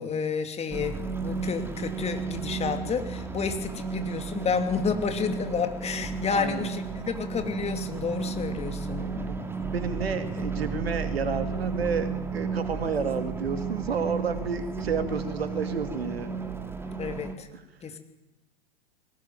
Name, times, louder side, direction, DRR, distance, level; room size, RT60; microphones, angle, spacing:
voice 1, 0.0-9.1 17.0-17.5 17.8-18.0, left 6 dB, 20° left, 7 dB, 2.8 m, -30 dB
sound 1, 0.7-17.3, right 5 dB, 5° right, 2.5 m, -33 dB
voice 2, 6.3-6.7 9.0-16.3 17.5-17.6, right 5 dB, 75° right, 9 dB, 2.7 m, -31 dB
20.5 x 19.0 x 9.6 m, 0.99 s
figure-of-eight pair, 95°, 31 cm